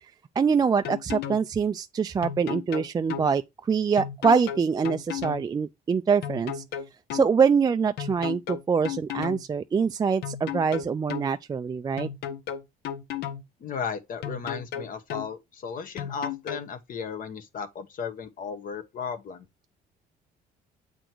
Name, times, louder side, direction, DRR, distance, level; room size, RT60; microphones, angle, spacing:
voice 1, 0.4-6.6 7.1-12.1, right 6 dB, 25° right, 0.4 m, -24 dB
sound 1, 0.6-1.4 2.2-3.3 4.0-5.4 6.2-7.3 8.0-9.4 10.2-11.3 12.0-13.4 14.2-15.3 16.0-16.6, left 9 dB, 75° left, 1.1 m, -34 dB
voice 2, 13.6-19.5, left 6 dB, 55° left, 1.3 m, -35 dB
7.9 x 3.9 x 4.5 m
cardioid pair, 110°, 17 cm